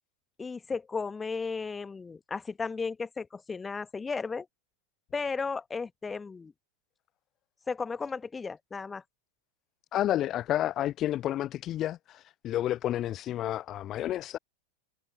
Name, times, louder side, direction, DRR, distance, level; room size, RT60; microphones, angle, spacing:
voice 1, 0.4-4.5 5.1-6.5 7.7-9.0, left 4 dB, 15° left, 1.5 m, -34 dB
voice 2, 9.9-14.4, left 12 dB, 30° left, 0.3 m, -30 dB
figure-of-eight pair, 90°, 0 cm